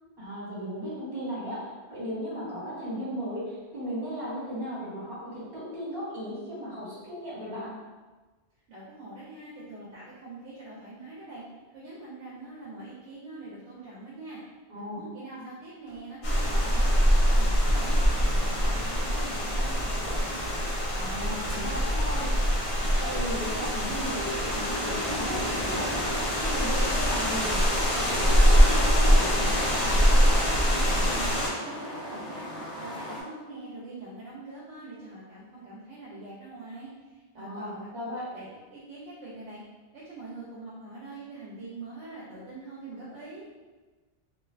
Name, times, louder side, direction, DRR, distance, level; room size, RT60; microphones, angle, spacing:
voice 1, 0.2-7.7 14.7-15.0 15.3-15.4 21.0-22.3 23.0-29.6 37.4-38.3, equal, 55° right, -8 dB, 1.3 m, -36 dB
voice 2, 8.7-11.4 11.7-14.4 15.0-16.9 17.3-20.5 30.6-39.6 39.9-43.5, right 2 dB, 80° right, -8 dB, 0.9 m, -44 dB
sound 1, 15.8-20.8 21.1-21.2, equal, 25° left, 0.7 m, -48 dB
sound 2, 16.2-31.5, equal, 50° left, 0.4 m, -24 dB
sound 3, 25.3-33.2, equal, 80° left, 1.0 m, -40 dB
2.7 x 2.2 x 2.3 m, 1.3 s
omnidirectional pair, 1.2 m